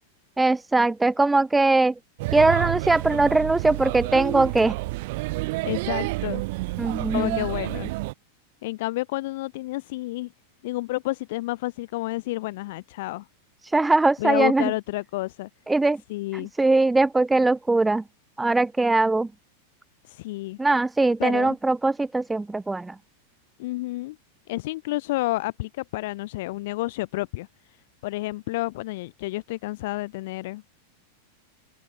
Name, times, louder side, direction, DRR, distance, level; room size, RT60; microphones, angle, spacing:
voice 1, 0.4-1.9 2.3-4.8 6.8-7.4 13.6-14.7 15.7-16.0 16.3-18.0 18.4-19.3 20.6-23.0, right 2 dB, 10° right, 2.7 m, -21 dB
Male speech man speaking / Child speech kid speaking / Chatter, 2.2-8.1, right 22 dB, 50° right, 3.1 m, -29 dB
voice 2, 5.4-6.4 7.1-7.9 8.6-10.3 10.6-13.3 14.2-15.5 16.1-16.5 20.0-20.6 21.2-21.6 23.6-24.2 24.5-30.6, left 19 dB, 50° left, 7.0 m, -30 dB
open air
figure-of-eight pair, 90°, 0 cm